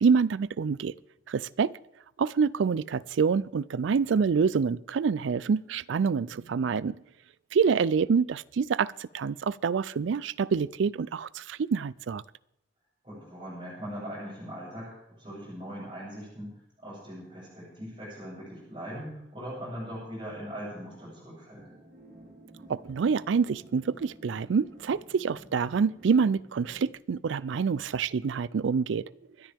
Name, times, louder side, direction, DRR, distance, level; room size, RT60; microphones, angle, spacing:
voice 1, 0.0-0.9 1.3-1.7 2.2-7.0 7.5-12.2 22.7-29.1, right 5 dB, 80° right, 21 dB, 0.4 m, -26 dB
voice 2, 13.0-16.5 16.8-21.8, equal, 30° right, -11 dB, 6.8 m, -40 dB
sound 1, 21.6-26.9, right 1 dB, 55° right, 4.6 m, -52 dB
25.5 x 10.5 x 3.5 m, 0.82 s
head